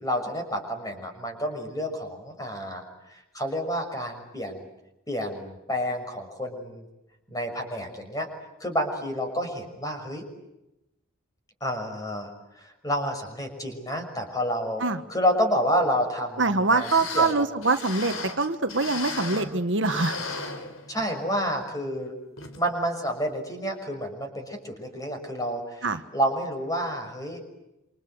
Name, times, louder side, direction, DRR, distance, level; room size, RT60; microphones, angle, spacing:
voice 1, 0.0-2.8 3.1-4.6 5.1-6.8 7.3-8.3 8.6-10.2 11.6-12.3 12.5-16.4 16.7-16.9 17.1-17.4 20.9-22.1 22.6-25.9 26.1-27.4, equal, 15° left, 5 dB, 6.3 m, -29 dB
voice 2, 16.4-20.2 25.8-26.0, right 3 dB, 60° right, 8 dB, 1.4 m, -24 dB
sound 1, 16.5-16.6 16.7-19.6 19.8-21.2 21.6-21.7 22.4-22.6 23.0-23.1, left 3 dB, 75° left, 4.5 m, -36 dB
28.0 x 26.5 x 8.0 m, 0.91 s
head